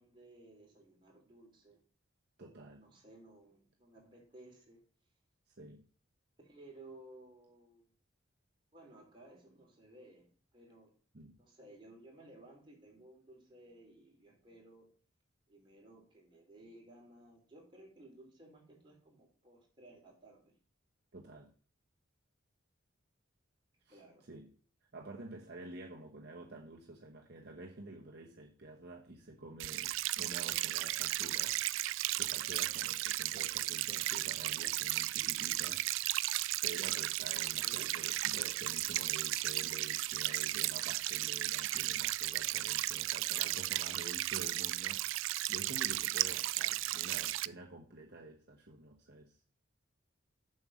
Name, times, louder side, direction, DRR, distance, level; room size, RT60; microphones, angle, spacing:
voice 1, 0.0-1.8 2.8-4.8 6.4-7.9 8.7-10.9 11.4-14.9 15.5-20.6 23.9-24.3 37.4-38.1, right 1 dB, 25° right, -2 dB, 3.0 m, -57 dB
voice 2, 2.4-2.8 5.6-5.8 11.1-11.4 21.1-21.5 23.9-24.0 24.3-24.5 24.9-31.6 32.2-35.9 36.6-49.4, right 2 dB, 55° right, 0 dB, 1.0 m, -49 dB
sound 1, 29.6-47.5, right 16 dB, 70° right, 0.3 m, -35 dB
7.5 x 5.5 x 6.2 m, 0.43 s
head